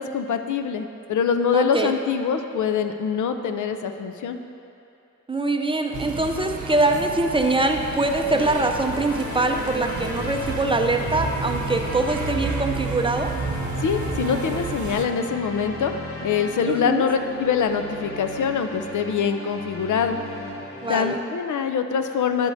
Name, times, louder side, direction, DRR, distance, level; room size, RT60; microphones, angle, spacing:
voice 1, 0.0-4.4 13.8-15.9 16.2-20.2 20.9-22.5, left 6 dB, 85° left, 7 dB, 0.5 m, -24 dB
voice 2, 1.5-1.9 5.3-13.3 16.7-17.0 20.8-21.2, right 2 dB, 20° right, 4 dB, 0.4 m, -23 dB
sound 1, 5.9-15.0, right 4 dB, 80° right, 0.6 m, -32 dB
sound 2, 8.3-21.1, left 1 dB, 50° left, 1.0 m, -35 dB
11.0 x 8.1 x 2.6 m, 2.7 s
wide cardioid pair, 110°, 29 cm